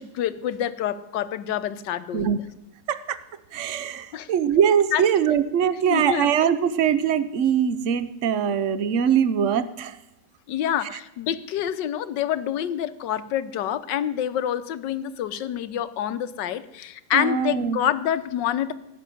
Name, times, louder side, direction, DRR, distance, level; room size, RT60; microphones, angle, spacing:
voice 1, 0.0-2.4 4.1-4.3 4.9-5.0 5.9-6.3 10.5-18.7, left 10 dB, 80° left, 14 dB, 1.4 m, -27 dB
voice 2, 2.9-3.2 3.5-10.0 10.8-10.9 17.1-17.8, right 8 dB, 55° right, 14 dB, 0.9 m, -22 dB
17.5 x 6.6 x 9.9 m, 0.90 s
omnidirectional pair, 1.9 m